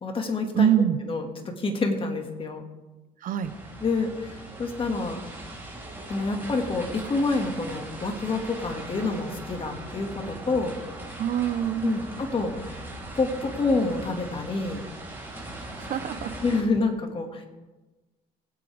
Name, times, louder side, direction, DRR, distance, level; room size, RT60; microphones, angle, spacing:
voice 1, 0.0-0.7 1.1-2.6 3.8-5.2 6.1-10.8 11.8-12.6 13.1-14.8 16.4-17.4, left 3 dB, 30° left, 3 dB, 2.0 m, -27 dB
voice 2, 0.5-1.0 3.2-3.5 11.2-12.0 15.7-16.3, right 9 dB, 55° right, 11 dB, 0.9 m, -24 dB
sound 1, 3.4-16.6, right 1 dB, 10° right, 3.3 m, -40 dB
21.5 x 8.3 x 3.5 m, 1.2 s
cardioid pair, 110°, 17 cm